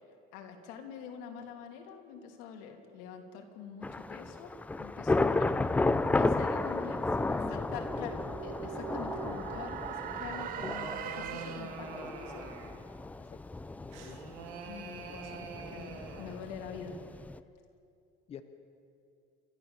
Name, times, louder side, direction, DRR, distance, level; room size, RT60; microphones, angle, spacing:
voice 1, 0.3-4.5 4.8-5.5 6.1-7.0 7.5-8.2 8.4-12.5 14.0-14.2 14.7-17.2, left 7 dB, 85° left, 3 dB, 2.9 m, -45 dB
Thunder / Rain, 3.8-17.4, left 2 dB, 5° left, 0.4 m, -33 dB
voice 2, 6.3-6.9 7.2-8.2 13.2-13.4 13.8-14.5 18.3-18.4, left 7 dB, 30° left, 7 dB, 0.9 m, -47 dB
sound 1, 6.8-11.9, right 11 dB, 45° right, 0.9 m, -43 dB
sound 2, 10.1-12.9 13.9-16.5, right 5 dB, 90° right, 2.6 m, -45 dB
29.0 x 13.0 x 7.3 m, 2.6 s
cardioid pair, 145°, 20 cm